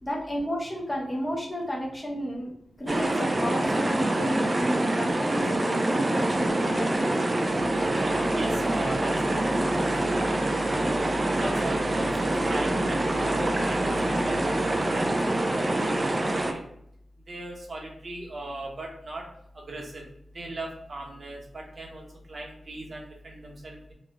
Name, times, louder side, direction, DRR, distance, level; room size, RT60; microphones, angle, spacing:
voice 1, 0.0-2.5 2.8-7.2, equal, 20° left, -3 dB, 0.8 m, -32 dB
sound 1, 2.9-16.5, right 1 dB, 35° right, 0.4 m, -26 dB
voice 2, 8.0-10.3 10.7-14.4 14.9-16.6 17.3-19.2 19.7-20.0 20.3-23.9, right 1 dB, 55° right, -1 dB, 1.0 m, -37 dB
3.1 x 2.4 x 3.4 m, 0.73 s
cardioid pair, 60°, 0 cm